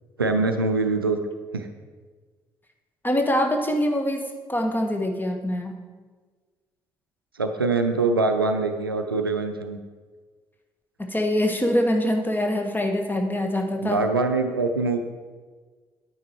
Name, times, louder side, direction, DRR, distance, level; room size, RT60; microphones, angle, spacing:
voice 1, 0.2-1.2 1.5-1.7 7.4-9.8 13.8-15.0, right 3 dB, 85° right, 7 dB, 0.5 m, -23 dB
voice 2, 3.0-5.8 11.0-14.0, left 1 dB, 15° left, 4 dB, 1.5 m, -24 dB
9.3 x 9.3 x 4.7 m, 1.4 s
figure-of-eight pair, 40°, 12 cm